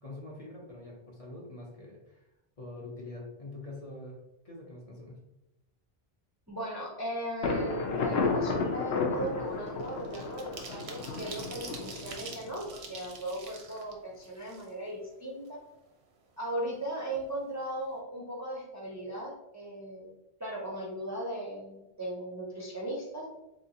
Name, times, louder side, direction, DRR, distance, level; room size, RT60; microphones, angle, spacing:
voice 1, 0.0-2.2 2.6-4.2 4.4-5.2, left 2 dB, 40° left, -2 dB, 0.7 m, -44 dB
voice 2, 6.5-15.6 16.4-20.1 20.4-23.2, right 1 dB, 20° right, -4 dB, 0.5 m, -37 dB
Thunder, 7.4-13.1, left 4 dB, 80° left, 0.9 m, -33 dB
sound 1, 8.1-8.3 8.7-15.1 15.5-15.6 15.9-16.8 17.1-17.3 17.6-17.9, right 4 dB, 85° right, 1.0 m, -47 dB
3.9 x 2.9 x 2.7 m, 0.92 s
omnidirectional pair, 1.0 m